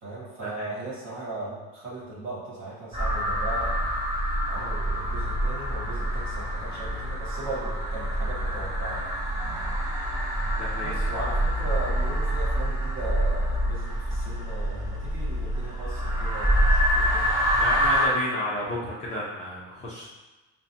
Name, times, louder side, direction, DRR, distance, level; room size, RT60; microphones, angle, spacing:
voice 1, 0.0-3.9 4.5-9.1 10.8-17.3, right 2 dB, 40° right, -6 dB, 1.4 m, -37 dB
sound 1, 2.9-18.1, equal, 15° right, 0.9 m, -26 dB
voice 2, 10.5-11.0 17.6-20.1, equal, 25° left, -7 dB, 0.4 m, -32 dB
5.7 x 2.1 x 2.7 m, 1.1 s
cardioid pair, 180°, 31 cm